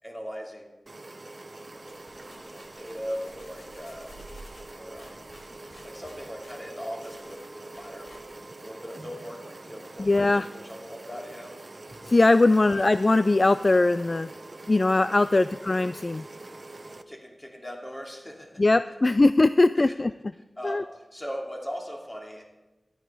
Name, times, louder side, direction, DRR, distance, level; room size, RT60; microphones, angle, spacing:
voice 1, 0.0-0.8 2.5-4.1 4.7-5.2 5.8-8.1 8.6-11.6 11.9-12.0 12.5-12.8 15.3-15.5 17.1-18.9 19.7-20.0 20.6-22.4, equal, 20° left, 0 dB, 2.6 m, -39 dB
sound 1, 0.9-17.0, right 2 dB, 45° right, 0.8 m, -44 dB
sound 2, 1.8-8.6, equal, 80° left, 2.4 m, -52 dB
voice 2, 10.0-10.5 12.1-14.3 14.7-16.2 18.6-20.1 20.6-20.8, left 2 dB, 45° left, 13 dB, 0.3 m, -21 dB
13.5 x 10.5 x 4.8 m, 1.1 s
wide cardioid pair, 55°, 0 cm